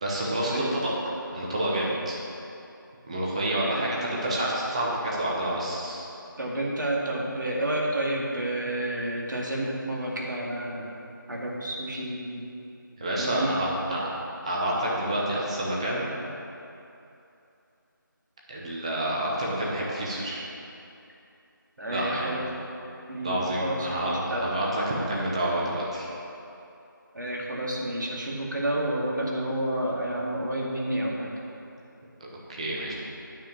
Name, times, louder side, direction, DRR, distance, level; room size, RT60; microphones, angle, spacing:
voice 1, 0.0-0.9 1.3-2.2 3.1-6.1 13.0-14.0 14.4-16.1 18.5-20.4 21.9-22.4 23.2-26.1 32.2-32.9, right 1 dB, 20° right, -4 dB, 1.0 m, -28 dB
voice 2, 3.7-4.5 6.4-11.0 11.3-12.5 13.2-14.1 21.8-22.4 23.1-24.5 27.1-31.3, right 1 dB, 65° right, -3 dB, 2.2 m, -30 dB
8.9 x 5.0 x 7.3 m, 2.8 s
figure-of-eight pair, 170°, 11 cm